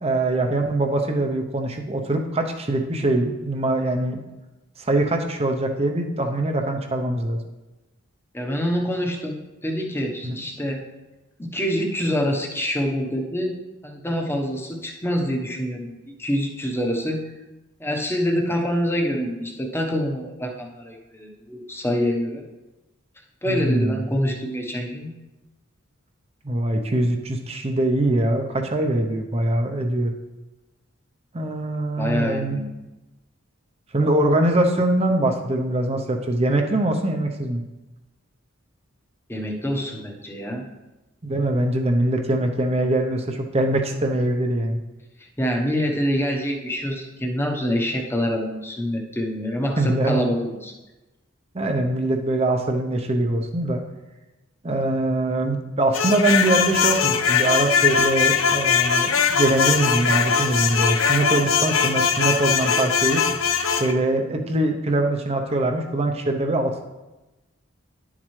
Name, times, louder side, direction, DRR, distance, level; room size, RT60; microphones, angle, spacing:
voice 1, 0.0-4.2 4.8-7.4 10.2-10.3 23.5-24.0 26.4-30.1 31.3-32.6 33.9-37.6 41.2-44.8 49.8-50.2 51.5-53.8 54.6-63.2 63.8-66.8, right 1 dB, 30° right, 3 dB, 0.7 m, -23 dB
voice 2, 8.3-10.8 11.4-13.6 13.8-15.9 16.2-17.2 17.8-22.4 23.4-25.1 32.0-32.7 39.3-40.7 45.2-50.7, equal, 10° left, 1 dB, 1.0 m, -26 dB
sound 1, 55.9-63.9, left 6 dB, 70° left, 0.6 m, -21 dB
10.5 x 7.4 x 3.2 m, 1.1 s
head